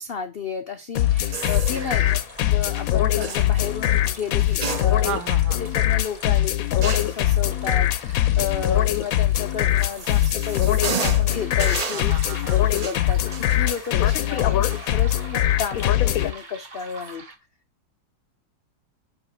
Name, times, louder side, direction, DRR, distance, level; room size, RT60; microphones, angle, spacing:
voice 1, 0.0-2.2 2.5-5.1 5.6-12.1 12.5-17.2, left 7 dB, 90° left, 0.5 m, -32 dB
sound 1, 0.9-16.3, left 12 dB, 65° left, 0.9 m, -22 dB
sound 2, 1.0-10.3 11.3-17.4, right 4 dB, 30° right, 1.1 m, -45 dB
sound 3, 1.3-2.2 3.2-3.5 4.4-5.3 5.7-5.8 6.8-7.2 9.3-15.4 15.8-15.9 16.8-17.1, right 4 dB, 55° right, 0.4 m, -33 dB
voice 2, 1.8-2.2 5.0-5.6 11.9-12.6, right 9 dB, 70° right, 1.6 m, -35 dB
5.8 x 5.4 x 5.7 m
omnidirectional pair, 1.9 m